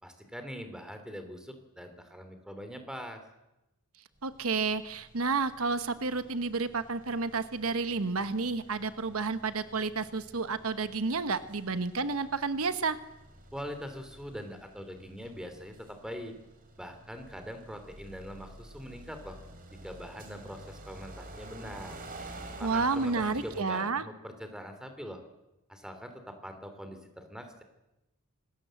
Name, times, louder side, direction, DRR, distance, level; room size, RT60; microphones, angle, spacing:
voice 1, 0.0-3.2 13.5-16.3 16.8-19.4 19.8-22.0 22.6-25.2 25.7-27.6, equal, 5° right, 7 dB, 3.3 m, -43 dB
sound 1, 4.2-23.6, right 2 dB, 40° right, 3.9 m, -50 dB
voice 2, 4.2-13.0 22.6-24.0, right 4 dB, 75° right, 11 dB, 1.1 m, -30 dB
25.5 x 20.0 x 7.8 m, 0.94 s
head